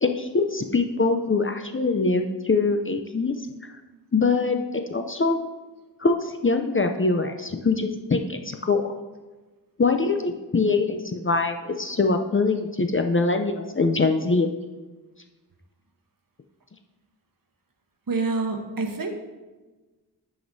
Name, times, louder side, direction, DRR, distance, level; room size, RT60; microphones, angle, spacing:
voice 1, 0.0-3.5 4.1-5.4 6.0-8.9 9.8-14.5, left 3 dB, 30° left, 6 dB, 0.5 m, -23 dB
voice 2, 18.1-19.1, right 3 dB, 50° right, 4 dB, 1.0 m, -27 dB
9.2 x 5.0 x 2.7 m, 1.2 s
cardioid pair, 45°, 42 cm